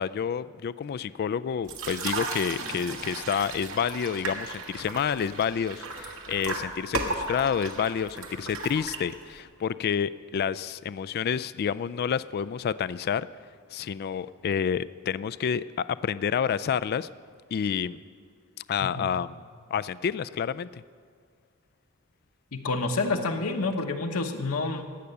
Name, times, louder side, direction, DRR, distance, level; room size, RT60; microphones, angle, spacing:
voice 1, 0.0-13.3 13.7-17.1 17.5-18.0 18.7-19.4 19.7-20.8, left 7 dB, 45° left, 16 dB, 0.3 m, -29 dB
sound 1, 1.6-9.4, right 3 dB, 65° right, 1.7 m, -35 dB
voice 2, 22.5-24.8, left 3 dB, 70° left, 3 dB, 1.0 m, -28 dB
15.5 x 6.6 x 9.6 m, 2.1 s
head